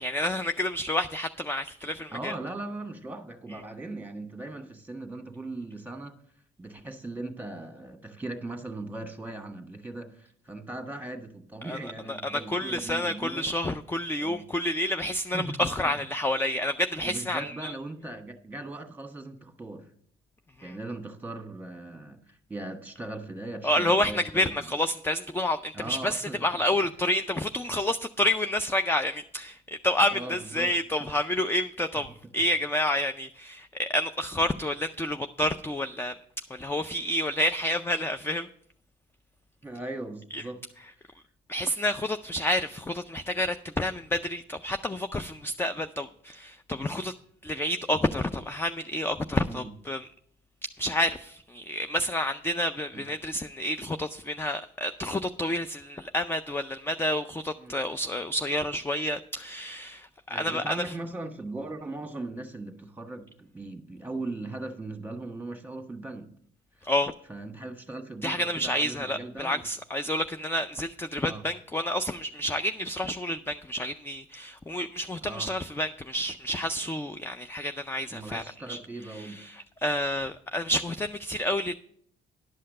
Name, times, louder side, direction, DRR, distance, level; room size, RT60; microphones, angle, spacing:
voice 1, 0.0-2.3 11.6-17.7 20.6-20.8 23.6-29.6 29.8-36.2 36.5-38.5 40.3-40.4 41.5-47.1 47.4-50.1 50.8-60.9 66.8-67.1 68.2-78.4 78.7-78.8 79.1-81.7, left 1 dB, 10° left, 0.4 m, -29 dB
voice 2, 2.1-6.1 6.6-13.4 14.2-14.4 15.3-15.7 17.0-19.9 20.6-24.5 25.7-26.9 30.1-30.7 31.0-31.1 39.6-40.6 49.5-49.7 52.9-53.0 57.6-57.8 60.3-66.3 67.3-69.7 71.2-71.4 75.2-75.5 78.1-79.4, right 2 dB, 10° right, 1.4 m, -39 dB
11.0 x 5.6 x 6.5 m
cardioid pair, 90°, 20 cm